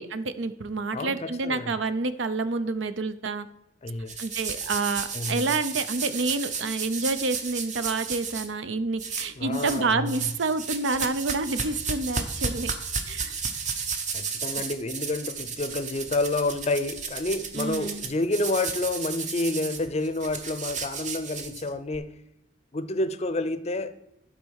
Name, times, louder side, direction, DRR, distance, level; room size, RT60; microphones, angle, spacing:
voice 1, 0.0-3.5 4.2-12.7 13.1-13.4 17.6-18.1, right 3 dB, 75° right, 0.6 m, -28 dB
voice 2, 0.9-1.8 3.8-4.2 5.1-5.6 9.4-10.3 14.1-22.1 22.7-23.9, left 2 dB, 35° left, 0.5 m, -29 dB
sound 1, 4.1-8.5 9.0-9.8 10.1-22.0, right 5 dB, 40° right, 0.9 m, -33 dB
11.5 x 4.2 x 6.4 m
head